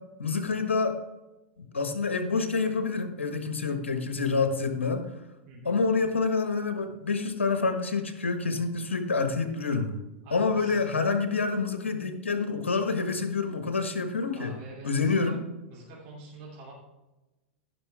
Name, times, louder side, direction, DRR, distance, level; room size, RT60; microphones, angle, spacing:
voice 1, 0.2-1.0 1.7-5.1 5.6-9.9 10.3-14.5 14.8-15.4, left 4 dB, 80° left, 7 dB, 1.4 m, -27 dB
voice 2, 5.5-5.8 10.2-10.8 14.3-15.3 15.7-16.7, right 2 dB, 45° right, -5 dB, 3.0 m, -46 dB
15.5 x 6.1 x 3.5 m, 1.0 s
figure-of-eight pair, 95°, 6 cm